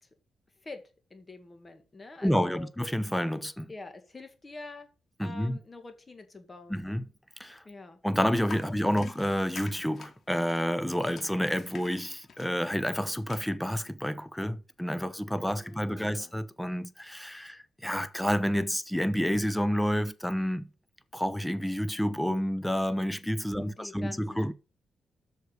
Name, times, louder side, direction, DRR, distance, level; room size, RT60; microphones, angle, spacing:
voice 1, 1.1-2.7 3.7-4.9 5.2-6.9 7.7-8.0 8.9-9.1 15.4-16.4 23.5-24.5, left 3 dB, 25° left, 2.0 m, -46 dB
voice 2, 2.2-3.7 5.2-5.6 6.7-7.0 7.4-7.6 8.0-20.6 21.1-24.5, equal, 5° left, 0.9 m, -29 dB
sound 1, 8.4-13.4, left 5 dB, 55° left, 2.5 m, -49 dB
8.0 x 6.5 x 6.5 m
cardioid pair, 100°, 0 cm